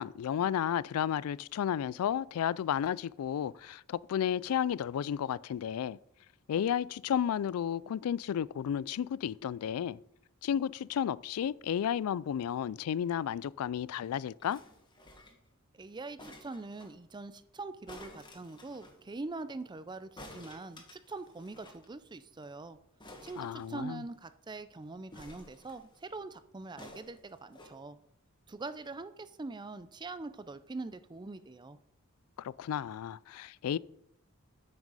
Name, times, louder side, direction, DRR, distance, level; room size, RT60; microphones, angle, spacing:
voice 1, 0.0-6.0 6.5-10.0 10.4-14.6 23.4-24.0 32.4-33.8, left 9 dB, 90° left, 0.3 m, -32 dB
sound 1, 14.4-15.5 16.2-16.9 17.9-19.0 20.2-21.9 22.1-22.2 22.4-22.6 23.0-24.2 25.1-26.0 26.8-27.7 28.5-28.6, left 1 dB, 20° left, 1.7 m, -52 dB
voice 2, 15.7-22.8 23.2-28.0 28.5-31.8, right 3 dB, 20° right, 0.5 m, -43 dB
8.9 x 6.1 x 5.5 m
head